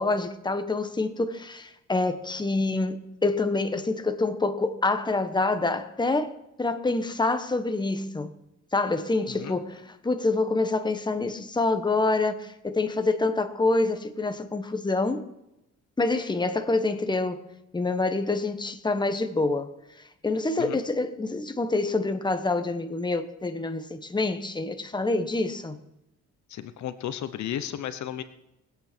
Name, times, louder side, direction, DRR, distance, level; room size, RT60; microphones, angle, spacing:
voice 1, 0.0-6.3 6.6-8.3 8.7-15.2 16.0-17.4 17.7-19.7 20.2-25.8, left 3 dB, 15° left, 1.2 m, -26 dB
voice 2, 26.5-28.2, left 10 dB, 70° left, 0.9 m, -34 dB
21.0 x 8.5 x 4.5 m
cardioid pair, 90°, 30 cm